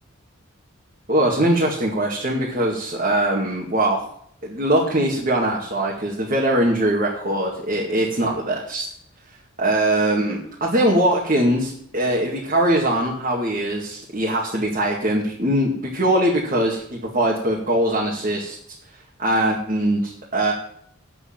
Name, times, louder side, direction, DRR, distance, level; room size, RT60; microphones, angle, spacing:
voice 1, 1.1-4.0 4.4-8.8 9.6-18.6 19.2-20.5, right 1 dB, 40° right, -3 dB, 2.3 m, -21 dB
8.6 x 7.9 x 8.8 m, 0.66 s
head